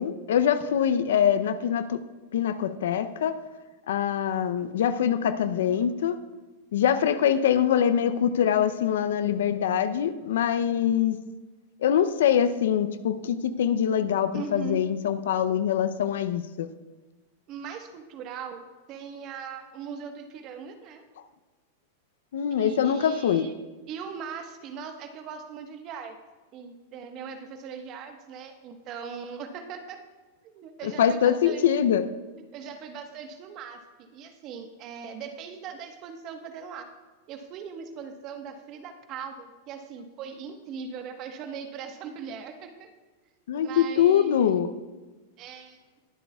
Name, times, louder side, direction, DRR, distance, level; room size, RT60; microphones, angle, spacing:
voice 1, 0.0-2.0 2.3-3.4 3.9-6.2 6.7-11.2 11.8-16.7 22.3-23.5 30.8-32.0 43.5-44.7, left 9 dB, 75° left, 12 dB, 0.6 m, -24 dB
voice 2, 14.3-14.8 17.5-21.0 22.6-23.5 23.9-26.1 26.5-30.0 30.4-31.9 32.4-36.9 37.3-42.9 43.5-44.6 45.4-45.8, right 6 dB, 45° right, 6 dB, 1.2 m, -40 dB
21.0 x 7.8 x 2.3 m, 1.3 s
hypercardioid pair, 115°, 0 cm